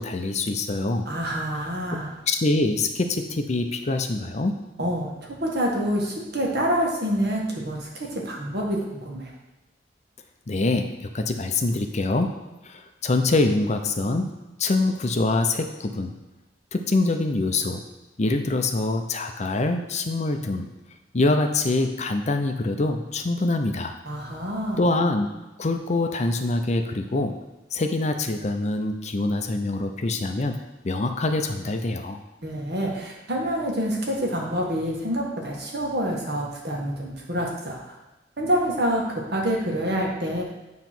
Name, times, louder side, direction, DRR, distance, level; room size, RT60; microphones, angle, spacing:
voice 1, 0.0-1.1 1.6-2.0 2.3-4.6 10.5-12.4 12.6-16.1 16.7-17.8 18.2-20.7 21.1-24.0 24.8-25.3 25.6-27.4 27.7-30.6 30.8-32.2, left 2 dB, 40° left, 6 dB, 0.6 m, -25 dB
voice 2, 1.0-2.1 4.8-9.3 24.1-24.8 32.4-37.9 38.4-40.4, equal, 60° right, -1 dB, 1.6 m, -27 dB
9.0 x 3.1 x 5.9 m, 1.1 s
head